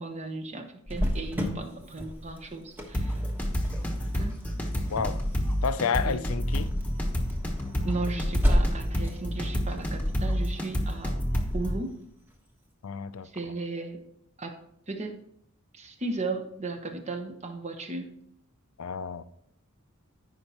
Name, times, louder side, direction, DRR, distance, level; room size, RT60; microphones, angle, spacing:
voice 1, 0.0-3.2 3.7-3.9 4.1-4.4 6.0-6.2 7.4-7.6 7.8-11.2 11.5-12.0 13.3-14.0 14.4-14.6 14.9-15.2 15.7-18.1, right 3 dB, 30° right, 1.1 m, -35 dB
Cricket, 0.9-12.3, equal, 10° right, 1.3 m, -34 dB
sound 1, 2.9-11.8, equal, 5° left, 1.2 m, -29 dB
voice 2, 5.6-6.7 12.8-13.3 18.8-19.2, left 6 dB, 75° left, 0.5 m, -30 dB
14.0 x 5.5 x 3.0 m
head